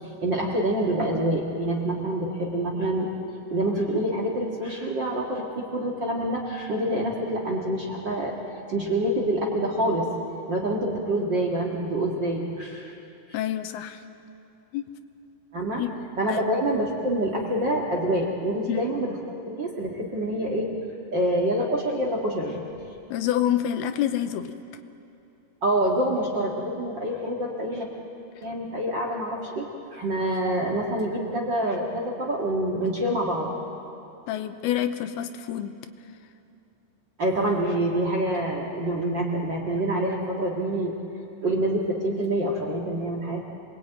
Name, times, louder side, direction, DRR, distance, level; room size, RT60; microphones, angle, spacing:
voice 1, 0.2-3.1 3.5-8.4 8.7-10.1 10.5-12.9 13.3-13.4 15.5-15.8 16.2-19.2 19.4-20.7 21.1-22.6 25.6-27.9 28.4-33.5 37.2-40.9 41.4-43.5, right 1 dB, 40° right, -1 dB, 1.9 m, -26 dB
voice 2, 13.3-14.0 14.7-14.8 15.8-15.9 16.3-16.4 18.7-18.8 23.1-24.5 34.3-35.8, left 11 dB, 85° left, 9 dB, 2.8 m, -27 dB
27.0 x 20.5 x 9.1 m, 2.7 s
omnidirectional pair, 4.6 m